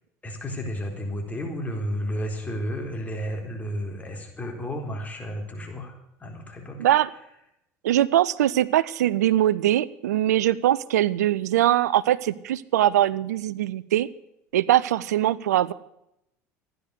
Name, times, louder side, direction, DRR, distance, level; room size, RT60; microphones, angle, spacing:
voice 1, 0.2-5.9 6.2-6.8, equal, 15° left, 1 dB, 4.2 m, -32 dB
voice 2, 7.8-14.1 14.5-15.7, right 13 dB, 80° right, 18 dB, 0.6 m, -22 dB
15.0 x 11.0 x 6.5 m, 0.80 s
hypercardioid pair, 75°, 9 cm